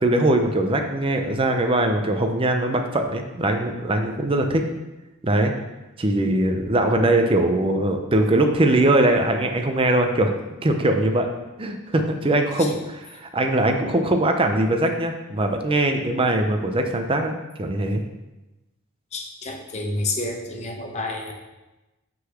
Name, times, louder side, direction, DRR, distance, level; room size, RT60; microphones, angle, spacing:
voice 1, 0.0-4.6 5.2-5.5 6.0-10.3 10.6-11.3 11.6-18.0, right 1 dB, 25° right, 5 dB, 0.5 m, -21 dB
voice 2, 19.1-21.3, left 2 dB, 30° left, 1 dB, 0.8 m, -29 dB
5.8 x 3.9 x 6.1 m, 1.1 s
head